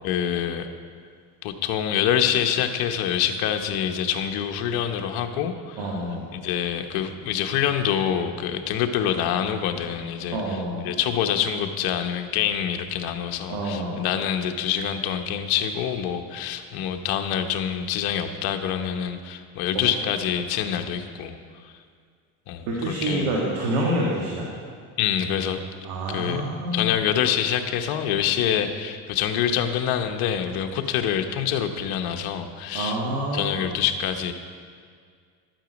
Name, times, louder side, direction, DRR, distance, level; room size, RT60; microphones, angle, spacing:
voice 1, 0.0-0.7 1.4-6.0 6.3-10.6 10.8-21.4 22.5-23.2 25.0-25.6 26.1-26.4 26.7-33.0 33.3-34.3, left 9 dB, 70° left, 6 dB, 1.0 m, -26 dB
voice 2, 5.8-6.2 10.3-10.9 13.5-14.0 19.7-19.9 22.7-24.5 25.8-26.9 32.7-33.7, right 1 dB, 90° right, -3 dB, 1.9 m, -27 dB
12.5 x 9.1 x 5.2 m, 2.1 s
cardioid pair, 115°, 39 cm